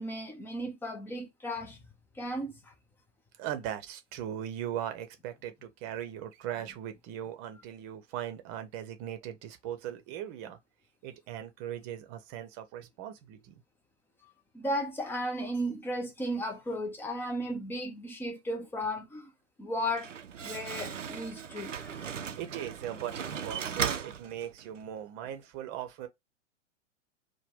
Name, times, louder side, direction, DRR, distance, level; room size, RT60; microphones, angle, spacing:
voice 1, 0.0-1.8 2.2-2.5 14.5-19.3 19.6-20.1 20.4-22.0, equal, 5° left, 0.5 m, -35 dB
voice 2, 3.4-10.6 11.0-13.5 21.6-21.8 22.1-26.1, right 10 dB, 35° right, 0.8 m, -39 dB
Slam, 19.7-24.8, right 7 dB, 85° right, 0.5 m, -37 dB
4.6 x 2.2 x 3.6 m
figure-of-eight pair, 100°, 37 cm